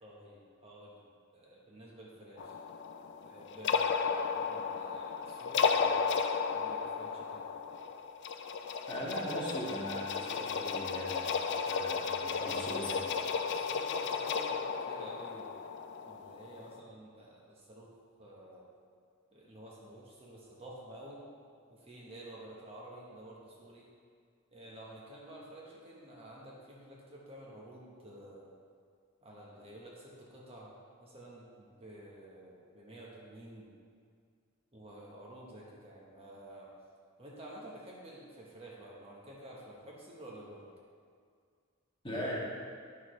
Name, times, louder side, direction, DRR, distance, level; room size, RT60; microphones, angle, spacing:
voice 1, 0.0-1.1 1.3-2.5 3.2-7.4 12.2-15.6 16.1-17.9 18.2-18.7 19.3-21.2 21.7-23.9 24.5-28.5 29.2-30.7 31.0-33.7 34.7-36.7 37.2-40.7, right 1 dB, 30° right, -4 dB, 1.1 m, -51 dB
sound 1, 2.4-16.8, left 5 dB, 55° left, 0.4 m, -34 dB
voice 2, 8.9-13.0 42.0-42.4, equal, 25° left, -6 dB, 1.5 m, -39 dB
9.5 x 6.4 x 3.2 m, 2.1 s
head